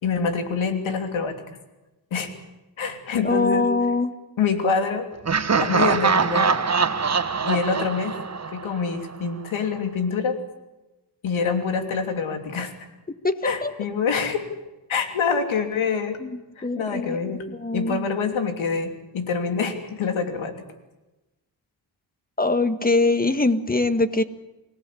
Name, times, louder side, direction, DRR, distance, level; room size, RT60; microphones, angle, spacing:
voice 1, 0.0-1.3 2.1-2.3 2.8-3.7 4.4-5.1 5.6-6.5 7.4-8.2 8.5-10.4 11.2-12.7 13.4-14.4 14.9-16.2 16.6-17.4 17.7-20.6, left 5 dB, 85° left, 6 dB, 3.1 m, -25 dB
voice 2, 3.2-4.1 13.2-13.7 16.2-17.2 17.5-18.1 22.4-24.2, left 3 dB, 20° left, 10 dB, 1.7 m, -23 dB
Laughter, 5.2-9.1, right 5 dB, 35° right, 1.3 m, -23 dB
25.0 x 17.5 x 8.6 m, 1.0 s
cardioid pair, 75°, 46 cm